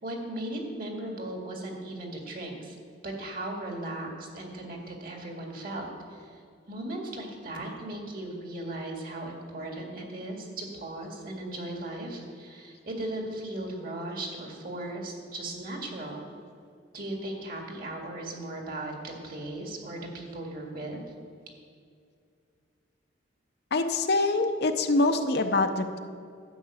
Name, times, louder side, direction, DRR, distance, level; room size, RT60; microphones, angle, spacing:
voice 1, 0.0-2.8 3.0-6.4 6.7-16.2 16.9-21.0, right 1 dB, 55° right, 1 dB, 2.0 m, -37 dB
voice 2, 23.7-26.0, left 2 dB, 60° left, 7 dB, 0.7 m, -25 dB
11.5 x 5.8 x 8.2 m, 2.3 s
head